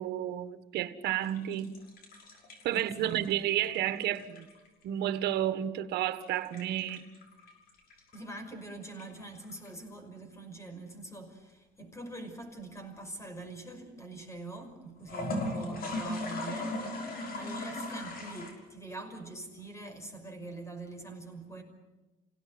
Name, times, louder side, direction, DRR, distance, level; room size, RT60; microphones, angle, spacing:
voice 1, 0.0-1.7 2.6-4.4 4.8-7.0, right 12 dB, 80° right, 1.5 m, -31 dB
sound 1, 1.2-4.8 6.1-8.2 8.8-9.7 15.0-18.5, left 2 dB, 60° left, 6.2 m, -38 dB
voice 2, 2.7-3.6 8.1-17.0 17.3-21.6, right 2 dB, 15° left, 5.7 m, -44 dB
28.0 x 17.5 x 9.6 m
cardioid pair, 110°, 17 cm